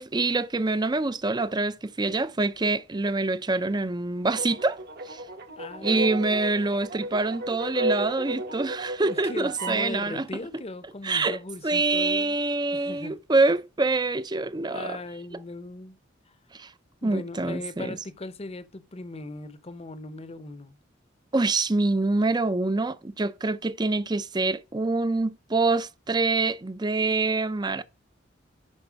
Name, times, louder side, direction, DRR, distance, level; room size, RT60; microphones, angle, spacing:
voice 1, 0.0-4.8 5.1-5.2 5.8-10.3 11.0-11.4 11.6-15.0 16.5-16.7 17.0-18.0 21.3-27.8, right 3 dB, 25° right, 0.6 m, -25 dB
sound 1, 4.2-9.9, right 1 dB, 60° right, 1.4 m, -33 dB
voice 2, 5.5-6.4 9.0-12.4 12.7-13.2 14.7-16.0 17.0-20.8, left 2 dB, 35° left, 0.9 m, -38 dB
11.0 x 4.3 x 5.2 m
head